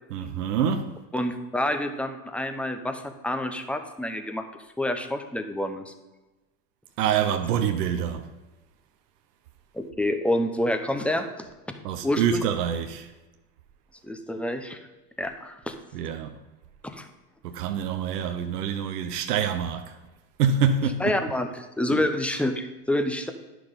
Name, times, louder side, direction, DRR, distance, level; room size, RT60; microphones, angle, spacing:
voice 1, 0.1-0.9 7.0-8.3 11.8-13.1 15.9-16.3 17.4-20.0 20.4-21.0 21.9-22.0, right 7 dB, 85° right, 0.8 m, -26 dB
voice 2, 1.1-4.4 4.8-5.9 9.7-11.5 12.0-12.4 14.0-14.8 15.2-15.7 16.8-17.1 21.0-23.3, left 1 dB, 5° left, 0.8 m, -28 dB
10.0 x 6.1 x 5.2 m
hypercardioid pair, 95°, 46 cm